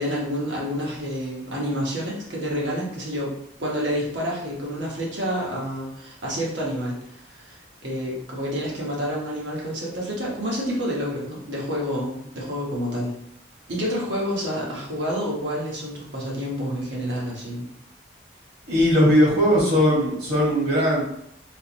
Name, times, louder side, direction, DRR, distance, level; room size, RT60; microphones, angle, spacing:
voice 1, 0.0-7.0 7.3-7.6 7.8-13.1 13.7-17.7, equal, 80° right, -4 dB, 1.2 m, -28 dB
voice 2, 18.7-21.0, equal, 65° right, -5 dB, 1.5 m, -19 dB
3.7 x 2.6 x 2.9 m, 0.73 s
head